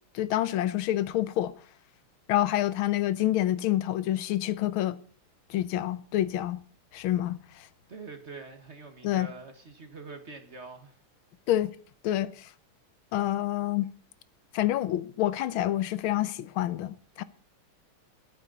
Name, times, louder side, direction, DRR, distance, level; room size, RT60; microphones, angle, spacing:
voice 1, 0.1-1.5 2.3-5.0 5.5-6.6 6.9-7.7 9.0-9.3 11.5-11.7 12.0-12.5 13.1-13.9 14.5-17.2, left 13 dB, 75° left, 1.6 m, -27 dB
voice 2, 7.9-11.0, right 3 dB, 35° right, 1.6 m, -44 dB
22.0 x 9.2 x 4.1 m
omnidirectional pair, 2.4 m